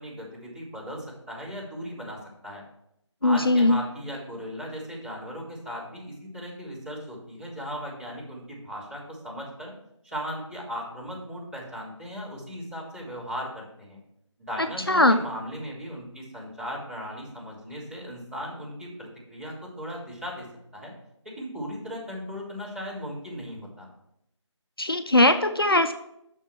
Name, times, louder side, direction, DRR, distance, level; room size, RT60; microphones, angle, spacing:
voice 1, 0.0-2.6 3.2-9.7 10.0-14.0 14.4-20.5 20.7-20.9 21.2-23.9, equal, 25° right, -11 dB, 3.9 m, -37 dB
voice 2, 3.2-3.8 14.9-15.2 24.8-25.9, left 2 dB, 50° left, 8 dB, 0.4 m, -20 dB
6.8 x 5.8 x 6.0 m, 0.79 s
figure-of-eight pair, 180°, 16 cm